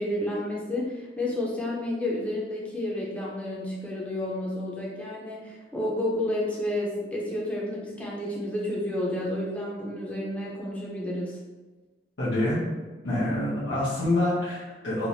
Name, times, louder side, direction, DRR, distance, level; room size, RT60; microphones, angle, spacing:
voice 1, 0.0-11.4, left 1 dB, 10° left, -4 dB, 0.5 m, -30 dB
voice 2, 12.2-12.6 13.0-15.1, left 1 dB, 85° left, -12 dB, 0.8 m, -26 dB
3.1 x 2.0 x 2.7 m, 1.3 s
head